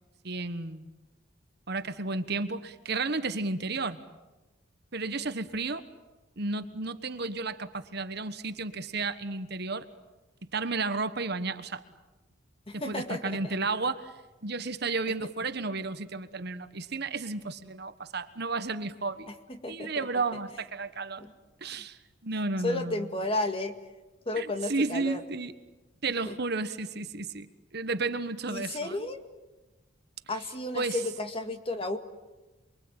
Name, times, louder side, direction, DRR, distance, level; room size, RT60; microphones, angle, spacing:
voice 1, 0.2-0.9 1.7-4.0 4.9-5.8 6.4-9.9 10.5-11.8 12.7-14.1 14.4-19.3 19.7-21.2 21.6-23.1 24.4-25.5 26.0-27.5 27.7-29.0 30.7-31.0, right 3 dB, 55° right, 10 dB, 1.4 m, -32 dB
voice 2, 12.7-13.6 19.5-20.1 21.2-21.3 22.6-23.8 24.3-25.2 26.2-26.4 28.5-29.2 30.3-32.0, left 2 dB, 30° left, 7 dB, 2.1 m, -33 dB
28.5 x 23.0 x 8.9 m, 1.1 s
head